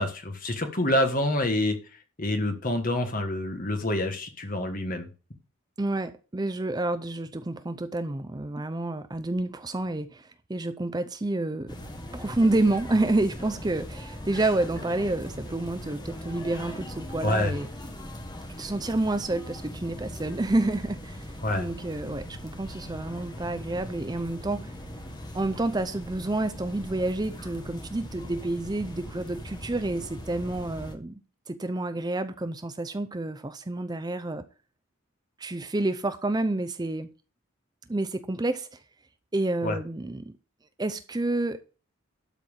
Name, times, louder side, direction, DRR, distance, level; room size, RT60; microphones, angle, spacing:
voice 1, 0.0-1.8 2.2-5.1 17.2-17.6 21.4-21.7 39.6-39.8, left 1 dB, 40° left, 1.6 m, -27 dB
voice 2, 5.8-11.8 12.1-17.7 18.6-24.7 25.3-31.2 31.5-34.4 35.4-37.1 37.9-38.8 39.3-40.3 40.8-41.6, right 2 dB, 20° right, 0.5 m, -29 dB
sound 1, 11.7-30.9, left 1 dB, 20° left, 1.3 m, -40 dB
12.5 x 4.5 x 7.2 m
head